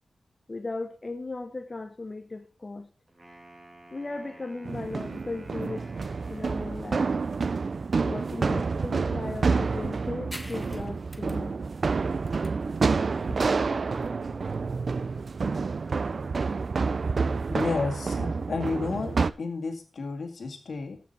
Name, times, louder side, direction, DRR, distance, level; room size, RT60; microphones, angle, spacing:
voice 1, 0.5-2.9 3.9-5.9 6.3-7.1 8.0-11.6, left 2 dB, 30° left, 7 dB, 0.8 m, -37 dB
Wind instrument woodwind instrument, 3.1-7.1, right 1 dB, 30° right, 2.6 m, -51 dB
sound 1, 4.7-19.3, right 4 dB, 55° right, 0.4 m, -28 dB
sound 2, 10.3-17.4, equal, ahead, 1.0 m, -49 dB
voice 2, 17.5-21.0, left 4 dB, 75° left, 4 dB, 2.0 m, -31 dB
14.5 x 6.2 x 4.2 m, 0.36 s
wide cardioid pair, 115°, 0 cm